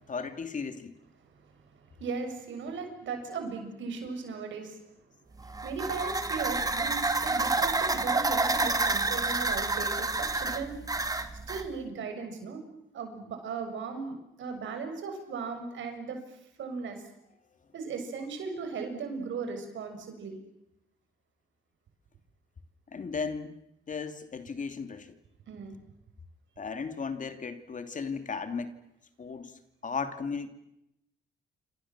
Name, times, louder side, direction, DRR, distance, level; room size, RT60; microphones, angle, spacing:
voice 1, 0.1-0.9 22.9-23.6 23.9-25.2 26.6-28.7 29.2-30.5, left 5 dB, 40° left, 8 dB, 2.9 m, -35 dB
voice 2, 1.8-4.8 5.6-10.8 11.5-12.6 12.9-17.0 17.7-20.4 25.5-25.8, right 5 dB, 70° right, 5 dB, 6.9 m, -37 dB
sound 1, 5.4-11.7, right 3 dB, 20° right, 2.3 m, -29 dB
28.0 x 27.0 x 7.5 m, 0.86 s
cardioid pair, 90°, 20 cm